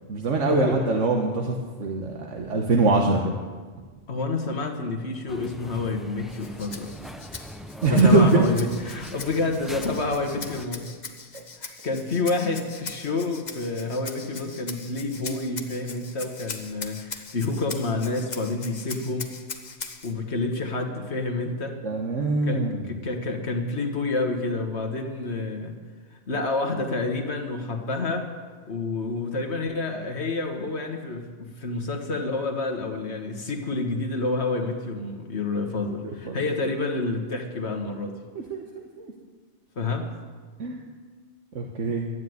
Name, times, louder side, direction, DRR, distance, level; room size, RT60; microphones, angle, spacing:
voice 1, 0.1-3.3 7.8-8.5 11.3-11.4 21.8-23.0 36.2-36.4 38.3-38.6 39.0-39.1 40.6-40.8 41.5-42.1, right 3 dB, 75° right, 1 dB, 1.5 m, -23 dB
voice 2, 4.1-6.9 7.9-11.0 11.6-19.3 20.0-21.7 22.5-22.6 22.9-25.8 26.3-28.3 28.7-38.1 39.8-40.1, left 3 dB, 60° left, 4 dB, 1.7 m, -28 dB
sound 1, 5.3-10.7, equal, ahead, 0.4 m, -42 dB
Rattle (instrument), 6.3-20.1, left 4 dB, 40° left, 1.1 m, -41 dB
12.5 x 9.5 x 9.4 m, 1.5 s
omnidirectional pair, 1.3 m